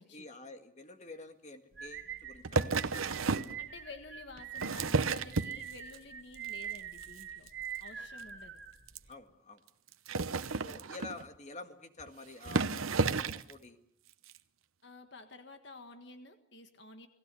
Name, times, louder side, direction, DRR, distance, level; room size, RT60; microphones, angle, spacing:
voice 1, 0.1-3.2 8.0-8.1 9.1-9.6 10.6-13.8, left 2 dB, 35° left, 7 dB, 1.9 m, -49 dB
sound 1, 1.8-9.1, right 8 dB, 60° right, 3.6 m, -44 dB
sound 2, 2.4-3.6 4.4-6.0 6.3-6.8 7.0-7.2 7.5-7.6 7.8-7.9 8.2-8.3 8.9-9.0 9.9-11.3 12.0-12.1 12.4-13.5 14.3-14.4, right 4 dB, 85° right, 0.9 m, -32 dB
voice 2, 3.3-7.5 7.8-8.6 14.8-17.1, left 3 dB, 55° left, 7 dB, 1.6 m, -51 dB
29.5 x 18.5 x 6.9 m, 0.67 s
head